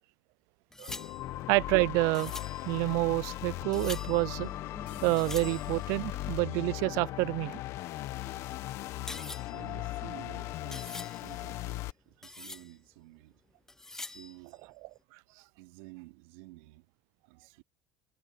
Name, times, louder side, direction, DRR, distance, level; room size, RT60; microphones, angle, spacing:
sound 1, 0.7-6.3 7.6-11.8 12.1-12.9 13.7-14.6, left 2 dB, 10° left, 0.6 m, -46 dB
sound 2, 0.9-11.9, left 16 dB, 55° left, 1.1 m, -38 dB
voice 1, 1.5-2.3 2.7-4.5 5.0-7.6, right 26 dB, 70° right, 0.4 m, -28 dB
sound 3, 4.9-6.7, left 19 dB, 85° left, 1.9 m, -53 dB
voice 2, 9.5-13.4 14.0-14.7 15.6-16.9 17.2-17.6, right 23 dB, 85° right, 4.2 m, -52 dB
cardioid pair, 135°, 6 cm